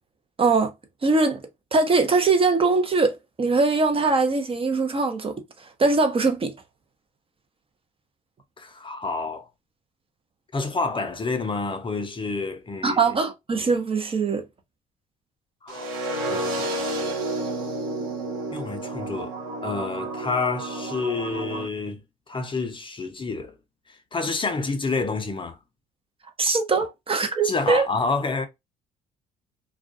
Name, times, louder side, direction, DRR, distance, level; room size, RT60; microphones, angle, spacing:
voice 1, 0.4-0.7 1.0-1.4 1.7-6.5 12.8-14.4 26.4-27.9, right 3 dB, 30° right, 0.6 m, -22 dB
voice 2, 8.6-9.5 10.5-13.1 15.6-15.9 16.3-17.1 18.5-19.3 19.6-22.0 22.3-23.5 23.9-25.6 27.4-28.5, left 4 dB, 25° left, 0.6 m, -29 dB
sound 1, 15.7-21.7, right 2 dB, 80° right, 0.8 m, -30 dB
2.3 x 2.2 x 2.5 m
hypercardioid pair, 60°, 18 cm